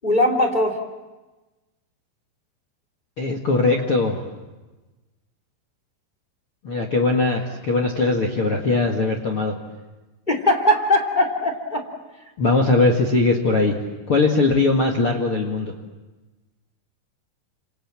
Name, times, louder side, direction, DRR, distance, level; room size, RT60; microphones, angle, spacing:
voice 1, 0.0-0.8 10.3-11.9, left 1 dB, 15° left, 3 dB, 1.9 m, -20 dB
voice 2, 3.2-4.2 6.6-9.5 12.4-13.7 14.1-15.7, left 3 dB, 60° left, 2 dB, 1.4 m, -20 dB
28.5 x 27.0 x 7.5 m, 1.2 s
omnidirectional pair, 5.8 m